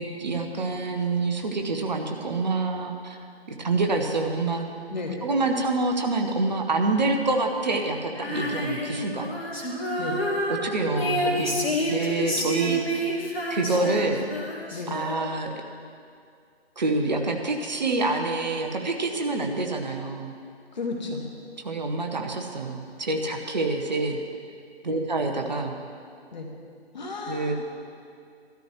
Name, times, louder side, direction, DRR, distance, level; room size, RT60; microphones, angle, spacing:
voice 1, 0.0-3.2 3.6-4.7 5.2-9.3 10.6-11.5 11.9-13.1 13.5-14.2 14.9-15.5 16.8-20.3 21.6-24.2 24.8-25.8 27.3-27.5, right 3 dB, 40° right, 3 dB, 0.9 m, -27 dB
Female singing, 8.1-15.5, equal, 65° left, 2.1 m, -29 dB
voice 2, 10.9-11.8 12.3-12.7 13.7-14.3 14.7-15.0 20.7-21.2 24.9-25.1 26.3-26.5 26.9-27.5, left 2 dB, 45° left, 1 dB, 1.6 m, -34 dB
15.0 x 13.0 x 3.1 m, 2.3 s
figure-of-eight pair, 145°, 33 cm